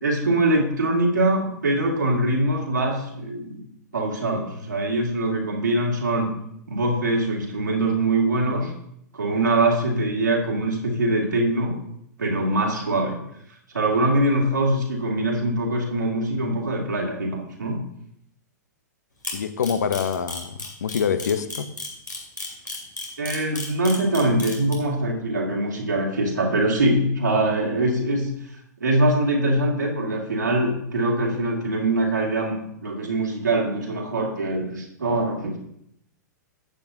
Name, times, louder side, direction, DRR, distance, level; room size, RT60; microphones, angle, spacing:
voice 1, 0.0-3.6 3.9-6.3 6.7-8.7 9.1-11.7 12.2-13.2 13.7-17.8 23.2-28.3 28.8-32.6 32.8-35.6, right 1 dB, 75° right, -1 dB, 2.4 m, -23 dB
Camera, 19.2-24.7, left 2 dB, 85° left, 2.6 m, -32 dB
voice 2, 19.3-21.7, left 7 dB, 65° left, 12 dB, 0.7 m, -25 dB
13.5 x 8.6 x 2.7 m, 0.75 s
figure-of-eight pair, 105°, 10 cm